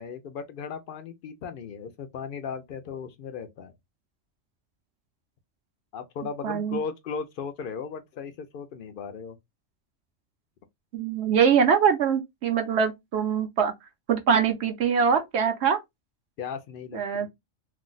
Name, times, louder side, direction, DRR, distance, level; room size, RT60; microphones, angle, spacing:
voice 1, 0.0-3.7 5.9-9.4 16.4-17.0, left 6 dB, 60° left, 0.5 m, -36 dB
voice 2, 6.4-6.8 10.9-13.7 14.1-15.8 16.9-17.3, right 7 dB, 65° right, 0.8 m, -23 dB
2.6 x 2.0 x 3.7 m
omnidirectional pair, 1.3 m